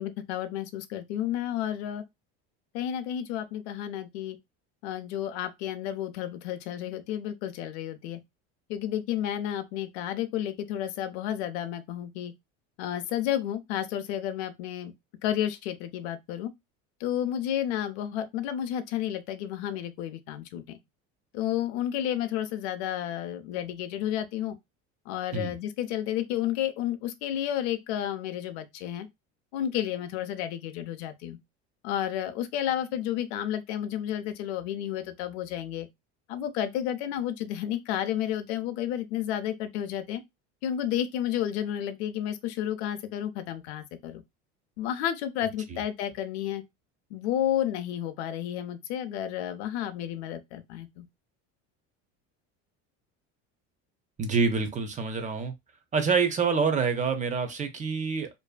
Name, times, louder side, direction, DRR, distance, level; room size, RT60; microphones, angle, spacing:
voice 1, 0.0-2.0 2.7-4.4 4.8-8.2 8.7-12.3 12.8-14.9 15.2-16.5 17.0-20.8 21.3-24.6 25.1-29.1 29.5-31.4 31.8-35.9 36.3-40.2 40.6-44.2 44.8-46.6 47.1-51.1, left 11 dB, 90° left, 0.5 m, -31 dB
voice 2, 54.2-55.5 55.9-58.3, right 5 dB, 25° right, 0.5 m, -26 dB
2.6 x 2.4 x 2.2 m
supercardioid pair, 110°, 31 cm